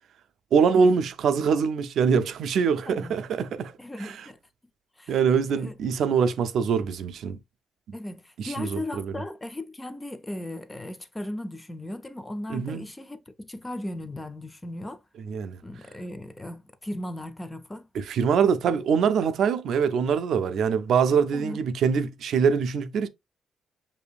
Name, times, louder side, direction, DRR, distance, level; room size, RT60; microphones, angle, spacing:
voice 1, 0.5-3.7 4.0-4.2 5.1-7.4 8.4-9.1 12.5-12.9 15.2-15.6 18.0-23.1, right 6 dB, 60° right, 0.4 m, -24 dB
voice 2, 2.9-3.2 3.8-4.4 5.0-5.1 5.6-5.7 7.9-15.0 15.6-17.9 21.3-21.6, left 1 dB, 10° left, 0.4 m, -37 dB
6.7 x 2.7 x 2.3 m
cardioid pair, 170°, 0 cm